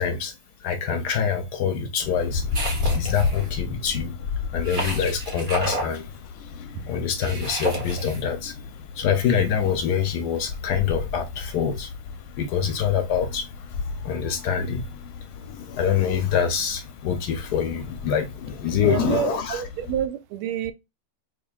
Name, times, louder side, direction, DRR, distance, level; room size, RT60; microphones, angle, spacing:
voice 1, 0.0-6.3 6.8-8.7 8.9-11.9 12.4-19.6, left 7 dB, 70° left, 1.0 m, -26 dB
sound 1, 2.0-20.1, left 5 dB, 90° left, 1.5 m, -34 dB
sound 2, 2.5-3.5 4.6-5.9 7.2-8.2, right 1 dB, 45° right, 0.6 m, -31 dB
voice 2, 18.9-20.7, right 10 dB, 90° right, 1.5 m, -28 dB
5.0 x 2.7 x 2.3 m
omnidirectional pair, 2.3 m